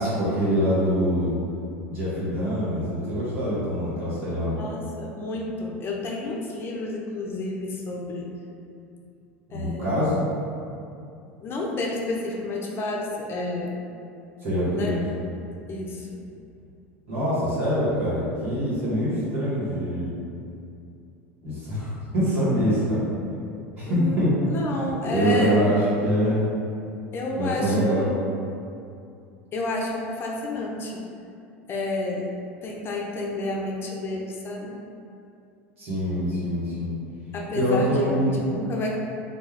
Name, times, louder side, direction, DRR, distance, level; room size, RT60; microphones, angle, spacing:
voice 1, 0.0-1.3 1.9-4.6 9.5-10.2 14.4-15.0 17.1-20.1 21.4-21.9 22.1-23.1 23.8-24.5 25.0-25.8 26.0-26.5 27.4-28.1 35.8-36.9 37.5-38.4, equal, 85° right, -10 dB, 1.2 m, -24 dB
voice 2, 4.5-8.4 9.5-10.0 11.4-13.8 14.7-15.0 15.7-16.2 23.8-24.2 24.5-25.6 27.1-28.1 29.5-31.1 31.7-32.3 32.6-34.8 37.3-39.0, left 2 dB, 35° left, -2 dB, 0.5 m, -30 dB
2.3 x 2.3 x 3.2 m, 2.5 s
hypercardioid pair, 85°, 7 cm